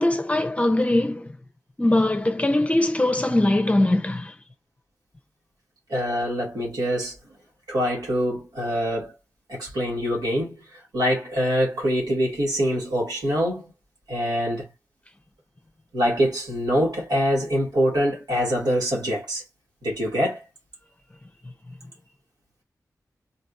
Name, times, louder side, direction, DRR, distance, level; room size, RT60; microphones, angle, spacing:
voice 1, 0.0-1.3 1.8-4.3, left 1 dB, 20° left, 0.7 m, -21 dB
voice 2, 5.9-7.2 7.7-9.1 9.5-13.7 14.1-14.7 15.9-19.4 19.8-20.4, equal, 90° right, 2.1 m, -24 dB
4.0 x 2.8 x 2.5 m
wide cardioid pair, 70°, 7 cm